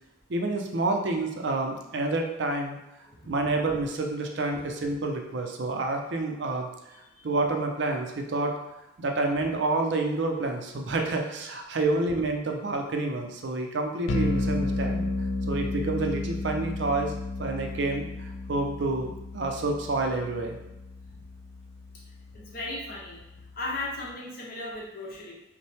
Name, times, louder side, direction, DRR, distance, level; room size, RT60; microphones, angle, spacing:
voice 1, 0.3-2.8 3.3-6.7 7.2-8.5 9.0-15.1 15.5-17.1 17.4-20.6, right 2 dB, 70° right, 3 dB, 0.5 m, -28 dB
sound 1, 14.1-24.1, left 2 dB, 85° left, 0.4 m, -33 dB
voice 2, 22.3-23.2 23.5-25.3, left 2 dB, 50° left, -4 dB, 1.0 m, -36 dB
5.4 x 2.2 x 3.4 m, 0.95 s
head